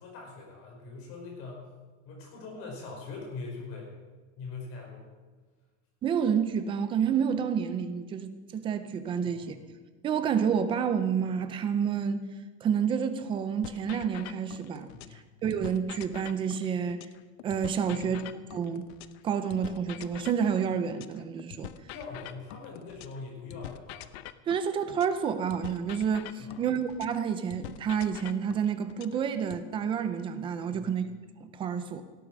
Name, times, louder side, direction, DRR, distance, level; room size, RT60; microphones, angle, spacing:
voice 1, 0.0-1.6 2.0-3.9 4.4-5.0 9.2-9.6 14.9-15.2 17.9-18.2 21.9-24.0 26.4-26.6 30.7-31.0, left 4 dB, 40° left, -1 dB, 4.9 m, -42 dB
voice 2, 6.0-9.6 10.0-12.2 12.6-17.0 17.4-18.2 18.5-18.8 19.2-21.7 24.5-31.1 31.4-32.0, right 7 dB, 15° right, 10 dB, 0.4 m, -29 dB
sound 1, 13.6-15.2 15.5-19.2 19.5-23.2 23.5-27.2 27.5-29.6, left 13 dB, 65° left, 0.7 m, -45 dB
17.0 x 8.5 x 6.1 m, 1.4 s
cardioid pair, 180°, 35 cm